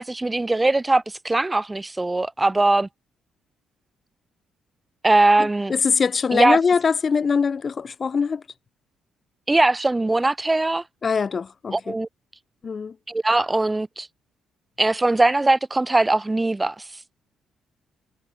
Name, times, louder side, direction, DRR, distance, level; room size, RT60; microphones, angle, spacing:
voice 1, 0.0-2.9 5.0-5.7 6.3-6.6 9.5-10.8 11.7-12.1 13.1-14.1 14.8-16.7, right 2 dB, 15° right, 0.8 m, -20 dB
voice 2, 5.4-8.4 11.0-12.0 12.6-12.9, left 5 dB, 40° left, 1.1 m, -22 dB
cardioid pair, 90°, 0 cm